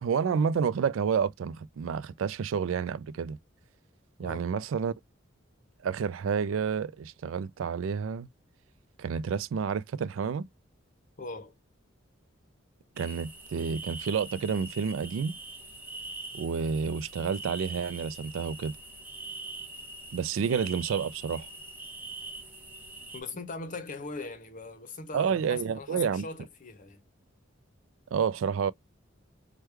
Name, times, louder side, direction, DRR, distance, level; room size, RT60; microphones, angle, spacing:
voice 1, 0.0-3.4 4.2-4.9 5.8-8.3 9.0-10.5 13.0-15.4 16.3-18.7 20.1-21.5 25.1-26.2 28.1-28.7, right 6 dB, 80° right, 0.3 m, -29 dB
voice 2, 11.2-11.5 23.1-27.0, left 3 dB, 40° left, 0.7 m, -40 dB
sound 1, 13.0-23.2, right 2 dB, 10° right, 0.9 m, -43 dB
3.1 x 2.2 x 3.3 m
head